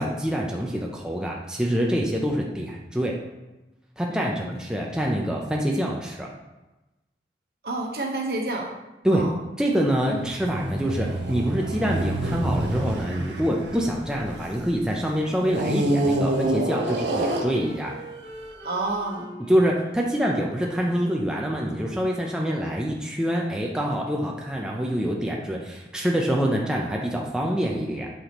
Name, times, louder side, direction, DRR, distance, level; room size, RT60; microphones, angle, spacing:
voice 1, 0.0-3.1 4.0-6.3 9.0-9.3 9.6-17.9 19.4-28.1, equal, 5° right, -2 dB, 0.6 m, -25 dB
voice 2, 4.1-4.5 7.6-8.7 9.1-9.3 10.1-10.2 18.6-19.4, right 2 dB, 60° right, 0 dB, 1.2 m, -29 dB
sound 1, 10.0-14.7 15.5-18.0 18.7-18.8, right 1 dB, 85° right, 1.0 m, -27 dB
Wind instrument woodwind instrument, 15.1-21.8, right 1 dB, 60° left, 1.5 m, -44 dB
8.3 x 5.8 x 3.0 m, 1.1 s
head